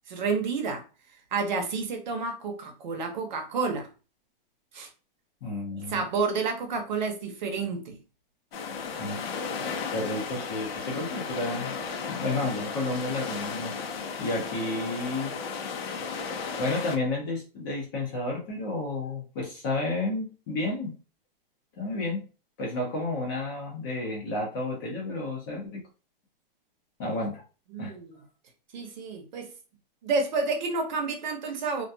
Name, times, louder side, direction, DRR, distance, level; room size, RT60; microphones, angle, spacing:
voice 1, 0.1-0.8 1.3-3.9 4.7-4.9 5.8-8.0 27.0-27.2 27.7-28.2 28.7-29.5 30.0-31.8, right 4 dB, 50° right, 0.7 m, -30 dB
voice 2, 5.4-6.0 9.0-9.3 9.9-11.7 12.1-13.8 14.2-15.4 15.7-16.0 16.6-21.0 21.8-22.2 22.6-25.8 27.0-27.4 27.8-27.9, left 2 dB, 25° left, 0.6 m, -31 dB
sound 1, 8.5-17.0, left 5 dB, 90° left, 0.7 m, -34 dB
2.3 x 2.2 x 2.6 m
hypercardioid pair, 170°, 29 cm